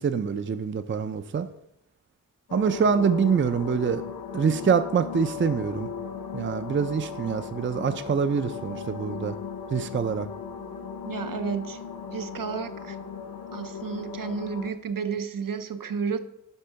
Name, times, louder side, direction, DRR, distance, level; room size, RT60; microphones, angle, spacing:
voice 1, 0.0-1.5 2.5-4.0 4.3-5.9 6.3-9.4 9.7-10.3, right 6 dB, 35° right, 11 dB, 0.4 m, -25 dB
sound 1, 2.5-14.7, left 6 dB, 75° left, 0.9 m, -37 dB
voice 2, 11.1-11.8 12.1-13.0 13.5-16.2, right 6 dB, 75° right, 9 dB, 0.6 m, -31 dB
9.9 x 3.5 x 5.6 m, 0.79 s
wide cardioid pair, 85°, 34 cm